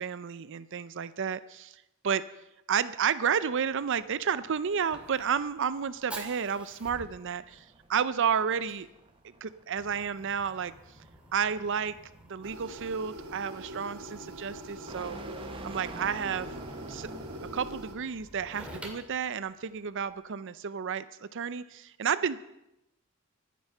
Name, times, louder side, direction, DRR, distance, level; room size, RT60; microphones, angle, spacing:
voice 1, 0.0-2.2 2.7-7.6 7.9-8.9 9.4-10.7 11.3-12.0 12.3-15.2 15.6-16.5 16.9-17.1 17.5-22.4, right 7 dB, 60° right, 15 dB, 0.6 m, -31 dB
sound 1, 3.3-17.9, right 2 dB, 25° right, 1.2 m, -48 dB
Fire, 4.0-20.2, right 1 dB, 5° right, 2.5 m, -50 dB
sound 2, 12.4-17.9, right 1 dB, 85° right, 2.5 m, -44 dB
23.5 x 9.4 x 5.6 m, 0.86 s
head